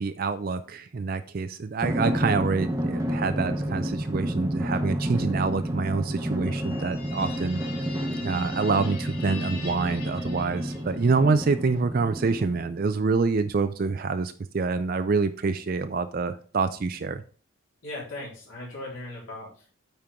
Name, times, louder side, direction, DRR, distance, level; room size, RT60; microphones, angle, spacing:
voice 1, 0.0-7.6 8.2-17.2, right 4 dB, 45° right, 10 dB, 0.4 m, -26 dB
Drum, 1.8-12.9, equal, 15° right, 0.8 m, -30 dB
sound 1, 6.5-11.2, left 4 dB, 45° left, 3.8 m, -43 dB
voice 2, 17.8-19.7, left 2 dB, 70° left, -6 dB, 3.6 m, -38 dB
8.7 x 4.5 x 3.5 m, 0.41 s
head